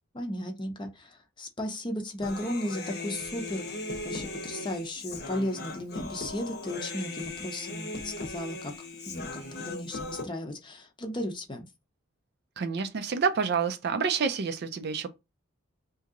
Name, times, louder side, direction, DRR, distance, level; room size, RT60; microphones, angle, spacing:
voice 1, 0.1-3.6 4.0-8.7 9.1-11.7, left 1 dB, 25° left, 0.6 m, -35 dB
Human voice, 2.2-10.2, left 2 dB, 50° left, 0.9 m, -38 dB
voice 2, 12.6-15.1, right 5 dB, 50° right, 0.4 m, -28 dB
2.9 x 2.7 x 3.6 m
head